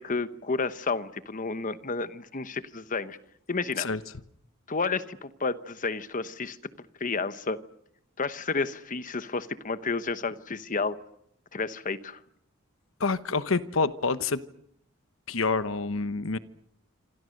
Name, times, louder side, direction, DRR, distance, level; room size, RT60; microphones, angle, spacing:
voice 1, 0.0-3.2 3.5-3.9 4.7-6.6 7.0-7.6 8.2-11.0 11.5-12.2, left 4 dB, 40° left, 13 dB, 1.0 m, -31 dB
voice 2, 13.0-14.4 15.3-16.4, left 4 dB, 70° left, 13 dB, 1.1 m, -27 dB
27.0 x 26.0 x 6.6 m, 0.76 s
head